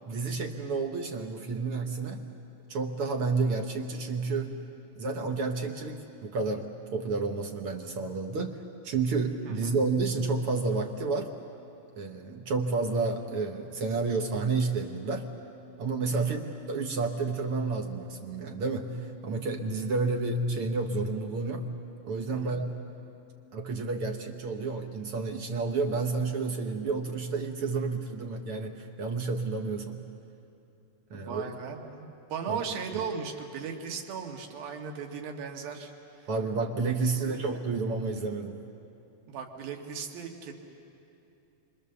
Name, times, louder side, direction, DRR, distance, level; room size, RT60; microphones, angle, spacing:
voice 1, 0.1-2.2 2.7-4.5 5.0-8.6 8.8-11.3 12.0-15.3 15.8-16.4 16.7-21.7 22.0-22.7 23.5-30.0 31.1-31.5 32.5-32.6 36.3-38.6, right 3 dB, 65° right, 4 dB, 1.4 m, -30 dB
voice 2, 9.4-9.8 16.1-16.4 22.3-22.6 31.1-35.9 36.2-36.3 37.1-37.4 39.3-40.5, right 6 dB, 85° right, 2 dB, 3.5 m, -37 dB
30.0 x 25.0 x 7.0 m, 2.8 s
omnidirectional pair, 4.0 m